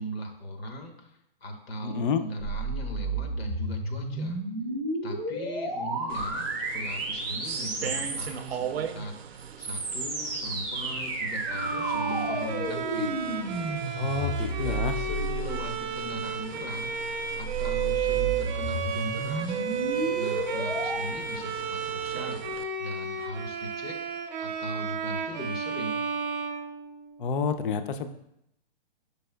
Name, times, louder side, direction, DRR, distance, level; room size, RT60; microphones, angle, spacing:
voice 1, 0.0-4.4 5.0-13.2 14.4-16.9 17.4-19.6 20.1-22.4 22.8-24.0 24.4-26.0, equal, 90° left, 4 dB, 0.9 m, -39 dB
voice 2, 1.8-2.2 13.9-14.9 27.2-28.1, left 5 dB, 60° left, 10 dB, 0.4 m, -29 dB
sound 1, 2.4-8.5 9.4-16.0 17.0-21.0, right 2 dB, 10° right, 0.4 m, -32 dB
sound 2, 6.1-22.6, right 8 dB, 90° right, 0.5 m, -41 dB
Bowed string instrument, 11.5-27.3, right 6 dB, 45° right, 0.6 m, -33 dB
5.3 x 4.3 x 2.2 m, 0.80 s
hypercardioid pair, 160°, 30 cm